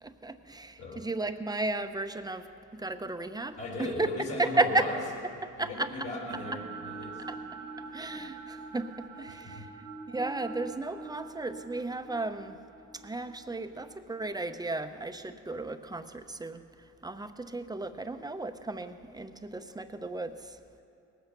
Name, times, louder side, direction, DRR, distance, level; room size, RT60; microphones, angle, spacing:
voice 1, 0.0-2.5 2.7-4.1 4.4-4.9 5.4-6.1 7.3-7.4 7.9-9.7 10.1-12.6 12.9-20.6, right 2 dB, 15° right, 8 dB, 0.7 m, -34 dB
voice 2, 3.6-5.0 5.3-7.2 9.3-9.7, left 2 dB, 70° left, -5 dB, 4.2 m, -38 dB
sound 1, 5.7-15.9, right 4 dB, 75° right, 1.7 m, -45 dB
19.0 x 8.3 x 6.7 m, 2.7 s
cardioid pair, 90°, 30 cm